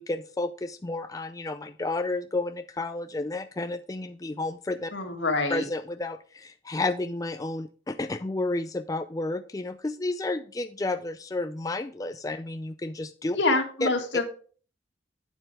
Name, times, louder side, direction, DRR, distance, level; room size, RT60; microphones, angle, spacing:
voice 1, 0.0-4.9 5.5-13.4 13.8-13.9, left 2 dB, 20° left, 8 dB, 0.4 m, -31 dB
voice 2, 4.9-5.6 13.4-14.2, left 2 dB, 75° left, 4 dB, 2.1 m, -26 dB
9.1 x 8.0 x 3.4 m, 0.40 s
head